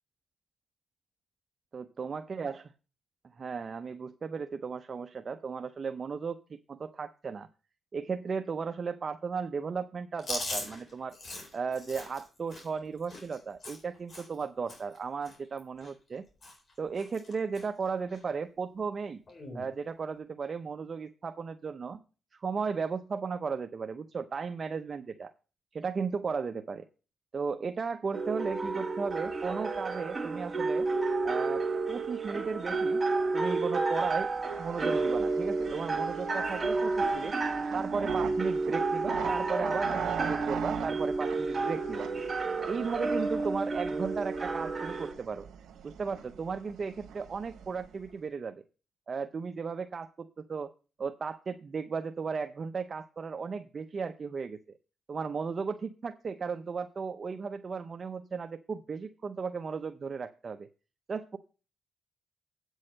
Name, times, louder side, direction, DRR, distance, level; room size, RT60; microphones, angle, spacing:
voice 1, 1.7-2.6 3.4-7.5 7.9-11.2 11.5-16.2 16.8-19.2 19.5-22.0 22.3-25.3 25.7-26.9 27.3-30.9 31.2-33.0 33.3-34.3 34.6-37.3 37.7-42.1 42.7-45.5 45.8-48.6 49.1-50.7 51.0-54.6 55.1-60.7 61.1-61.4, right 5 dB, 40° right, 8 dB, 0.6 m, -35 dB
Chewing mastication, 10.2-14.4 14.7-15.0 15.2-16.2 16.4-16.7 17.0-17.7 18.1-18.2 19.3-19.7, left 2 dB, 45° left, 4.2 m, -41 dB
sound 1, 28.1-45.1, right 3 dB, 20° right, 2.0 m, -31 dB
sound 2, 34.2-48.1, right 8 dB, 75° right, 1.4 m, -42 dB
8.5 x 6.4 x 6.4 m, 0.35 s
cardioid pair, 100°, 0 cm